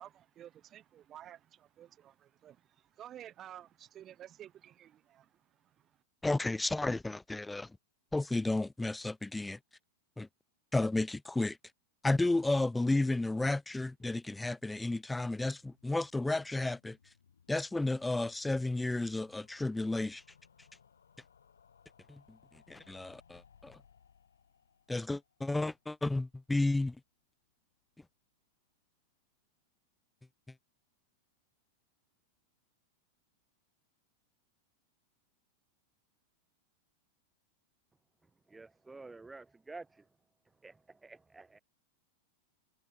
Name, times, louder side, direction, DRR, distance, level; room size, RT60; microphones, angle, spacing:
voice 1, 0.0-6.0, right 11 dB, 30° right, 4.2 m, -52 dB
voice 2, 6.2-7.7 8.1-9.6 10.2-10.3 10.7-11.6 12.0-17.0 17.5-20.2 22.1-22.4 22.7-23.8 24.9-27.0, left 2 dB, 5° left, 0.3 m, -32 dB
sound 1, 13.9-26.9 27.2-27.3 27.5-27.6 27.8-27.9, left 7 dB, 70° left, 4.4 m, -66 dB
voice 3, 38.5-40.1 40.6-41.6, right 3 dB, 10° right, 4.2 m, -50 dB
figure-of-eight pair, 90°, 0 cm